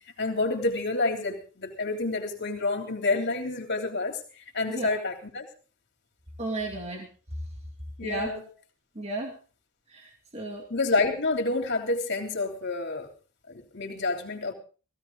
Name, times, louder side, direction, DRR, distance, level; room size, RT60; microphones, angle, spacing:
voice 1, 0.2-4.2 4.5-5.5 8.0-8.4 10.7-13.1 13.5-14.5, left 3 dB, 50° left, 3.3 m, -28 dB
voice 2, 4.7-5.0 6.4-7.1 8.0-8.4 8.9-9.4 9.9-10.7, right 2 dB, 30° right, 2.5 m, -34 dB
17.0 x 16.0 x 4.0 m
head